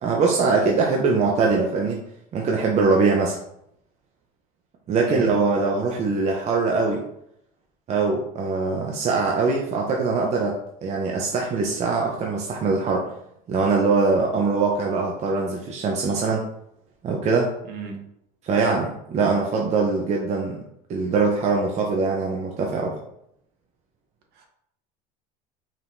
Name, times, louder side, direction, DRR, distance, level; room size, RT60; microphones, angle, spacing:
voice 1, 0.0-2.0 2.3-3.4 4.9-7.0 7.9-10.5 10.8-13.1 13.5-16.5 17.0-17.5 18.4-20.6 20.9-22.9, right 4 dB, 35° right, 0 dB, 0.7 m, -22 dB
voice 2, 5.0-5.4 17.7-18.1 24.4-24.5, right 3 dB, 55° right, 2 dB, 1.3 m, -34 dB
5.1 x 3.5 x 2.7 m, 0.75 s
supercardioid pair, 110°, 19 cm